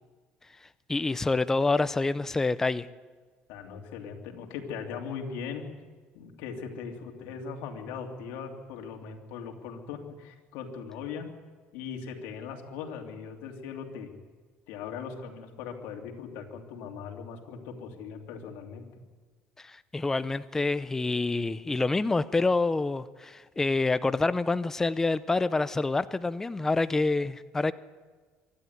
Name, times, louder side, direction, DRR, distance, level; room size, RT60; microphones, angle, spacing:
voice 1, 0.9-2.9 19.6-27.7, left 3 dB, 10° left, 0.5 m, -27 dB
voice 2, 3.5-5.6 6.1-11.3 11.7-14.1 14.7-18.8, left 6 dB, 85° left, 2.9 m, -39 dB
24.5 x 12.5 x 9.6 m
cardioid pair, 135°, 4 cm